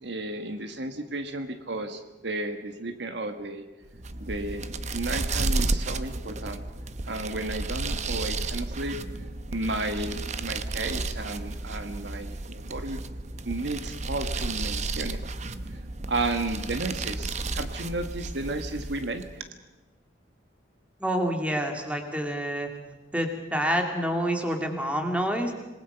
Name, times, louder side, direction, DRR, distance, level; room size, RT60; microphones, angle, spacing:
voice 1, 0.0-3.6 4.2-6.6 7.1-9.0 9.5-13.0 13.4-15.4 16.1-19.4, right 2 dB, 65° right, 8 dB, 1.6 m, -33 dB
sound 1, 3.9-19.4, right 3 dB, 40° right, 0.8 m, -32 dB
voice 2, 21.0-22.7 23.1-25.5, equal, 5° right, 3 dB, 2.5 m, -27 dB
27.0 x 20.0 x 5.8 m, 1.1 s
head